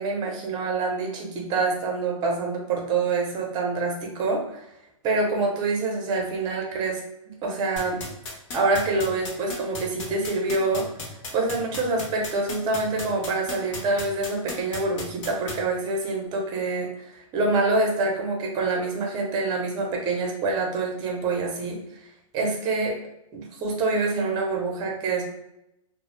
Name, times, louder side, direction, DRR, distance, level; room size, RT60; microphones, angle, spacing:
voice 1, 0.0-4.6 5.0-7.0 7.3-8.0 8.5-10.9 11.3-21.8 22.3-22.9 23.3-25.2, right 3 dB, 25° right, 0 dB, 0.6 m, -26 dB
sound 1, 7.8-15.5, left 3 dB, 60° left, 0.8 m, -34 dB
2.3 x 2.0 x 3.1 m, 0.85 s
hypercardioid pair, 135°, 18 cm